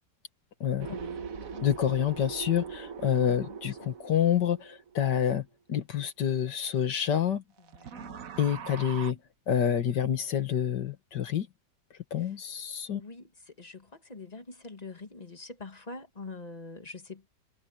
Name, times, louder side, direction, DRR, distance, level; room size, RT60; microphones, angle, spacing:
voice 1, 0.8-1.7 3.2-3.9 7.7-8.3 12.2-12.3 12.9-17.3, left 3 dB, 25° left, 1.8 m, -45 dB
sound 1, 0.8-5.4 7.6-9.1, right 7 dB, 55° right, 1.4 m, -41 dB
voice 2, 1.6-7.4 8.4-9.2 9.5-11.5 12.1-13.0, left 9 dB, 75° left, 2.1 m, -28 dB
omnidirectional pair, 1.9 m